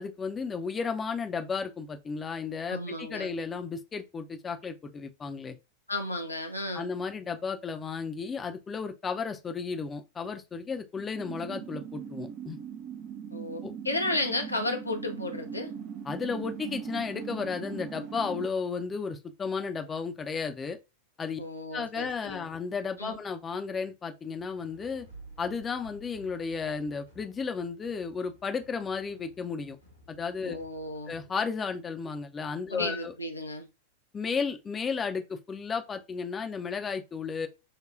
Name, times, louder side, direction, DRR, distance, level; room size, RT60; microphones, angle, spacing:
voice 1, 0.0-5.6 6.7-12.6 13.6-13.7 16.1-20.8 21.2-21.4 21.7-25.1 25.4-29.8 30.1-30.6 31.1-33.1 34.1-37.5, left 5 dB, 20° left, 0.6 m, -33 dB
voice 2, 2.7-3.3 5.9-6.9 13.3-15.7 21.4-22.5 23.0-23.2 30.4-31.1 32.7-33.7, left 2 dB, 85° left, 0.7 m, -33 dB
sound 1, 11.1-18.5, right 8 dB, 35° right, 0.5 m, -40 dB
sound 2, 24.4-31.3, right 2 dB, 90° right, 1.5 m, -54 dB
6.6 x 2.2 x 2.5 m
figure-of-eight pair, 90°, 0 cm